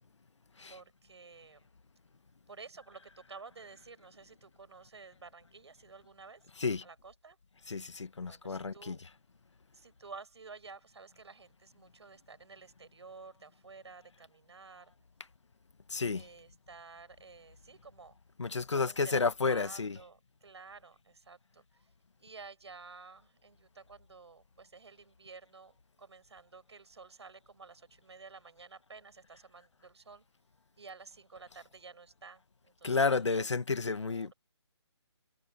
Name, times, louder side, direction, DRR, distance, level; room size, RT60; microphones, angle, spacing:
voice 1, 0.7-1.7 2.5-6.4 6.8-7.4 8.2-9.0 9.7-14.9 16.2-18.2 18.7-21.6 22.2-30.2 30.8-33.5 34.0-34.3, right 4 dB, 70° right, 7.9 m, -52 dB
voice 2, 7.7-9.0 15.9-16.3 18.4-20.0 32.8-34.3, left 4 dB, 80° left, 1.7 m, -31 dB
hypercardioid pair, 170°, 15 cm